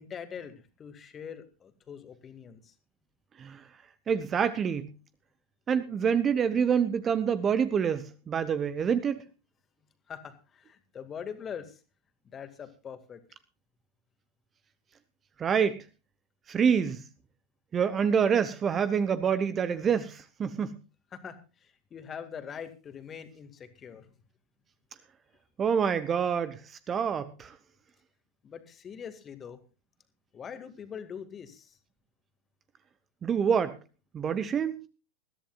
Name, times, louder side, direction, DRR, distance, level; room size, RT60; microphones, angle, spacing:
voice 1, 0.0-2.7 10.1-11.8 12.2-13.2 21.1-24.1 28.4-29.6 30.3-31.8, left 7 dB, 25° left, 2.0 m, -43 dB
voice 2, 4.1-4.9 5.7-9.2 15.4-15.8 16.5-17.0 17.7-20.7 25.6-26.6 26.9-27.5 33.2-33.8 34.1-34.9, right 7 dB, 25° right, 0.9 m, -26 dB
21.0 x 14.0 x 2.4 m
figure-of-eight pair, 90°, 0 cm